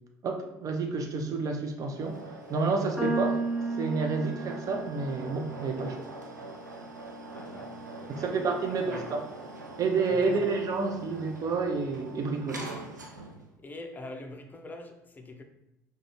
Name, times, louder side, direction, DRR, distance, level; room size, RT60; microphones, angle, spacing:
voice 1, 0.2-2.2 2.5-3.4 3.8-6.0 8.1-9.3 9.8-12.7, right 4 dB, 40° right, 0.6 m, -29 dB
sound 1, 1.8-13.5, right 2 dB, 90° right, 0.4 m, -44 dB
sound 2, 3.0-9.3, right 2 dB, 5° right, 1.0 m, -36 dB
voice 2, 7.3-8.4 8.6-9.1 10.1-10.4 13.6-15.4, left 2 dB, 20° left, 0.5 m, -44 dB
4.7 x 2.3 x 2.9 m
figure-of-eight pair, 60°, 9 cm